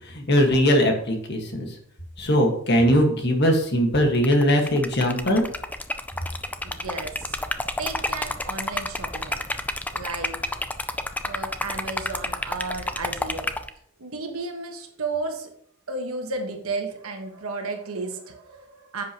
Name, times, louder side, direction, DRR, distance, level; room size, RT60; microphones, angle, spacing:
voice 1, 0.1-1.7 2.2-5.4, equal, 50° left, 2 dB, 1.7 m, -20 dB
Liquid, 4.1-13.7, left 2 dB, 5° left, 0.4 m, -30 dB
voice 2, 6.6-7.4 7.8-9.5 9.9-10.6 11.2-13.5 14.0-15.5 15.9-19.0, right 3 dB, 80° right, 4 dB, 1.5 m, -33 dB
10.5 x 7.7 x 3.0 m, 0.66 s
head